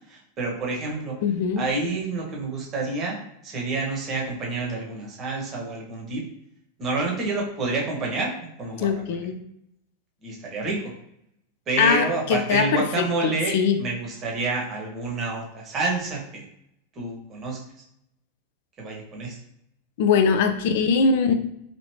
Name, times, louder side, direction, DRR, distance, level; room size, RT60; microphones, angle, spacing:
voice 1, 0.1-1.2 1.6-6.2 6.8-9.2 10.2-10.8 11.7-16.5 17.0-17.6 18.8-19.4, right 3 dB, 30° right, -1 dB, 0.9 m, -28 dB
voice 2, 1.2-1.6 8.8-9.4 11.8-13.8 20.0-21.3, left 6 dB, 50° left, 8 dB, 0.3 m, -22 dB
2.9 x 2.7 x 3.0 m, 0.76 s
figure-of-eight pair, 90°, 0 cm